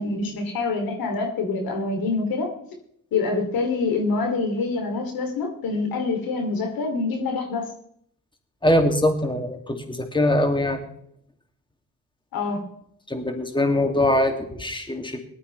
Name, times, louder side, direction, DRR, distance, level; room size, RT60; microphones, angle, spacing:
voice 1, 0.0-2.5 3.1-7.7 12.3-12.6, left 3 dB, 75° left, 4 dB, 3.1 m, -26 dB
voice 2, 8.6-10.8 13.1-15.2, left 1 dB, 15° left, 4 dB, 2.6 m, -22 dB
18.5 x 12.5 x 3.4 m, 0.68 s
supercardioid pair, 50°, 35 cm